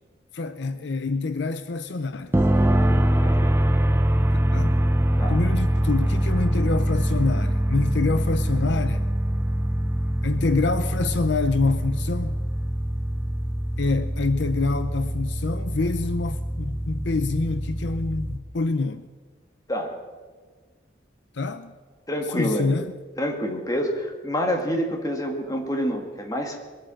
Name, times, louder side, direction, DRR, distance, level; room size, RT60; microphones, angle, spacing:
voice 1, 0.3-2.3 4.5-4.7 5.3-9.1 10.2-12.4 13.8-19.1 21.3-21.7 22.3-22.9, left 3 dB, 65° left, 0.6 m, -26 dB
sound 1, 2.3-18.4, right 1 dB, 10° right, 0.6 m, -24 dB
voice 2, 22.1-22.7 23.2-26.6, equal, 20° left, 1.9 m, -27 dB
21.5 x 8.7 x 7.6 m
head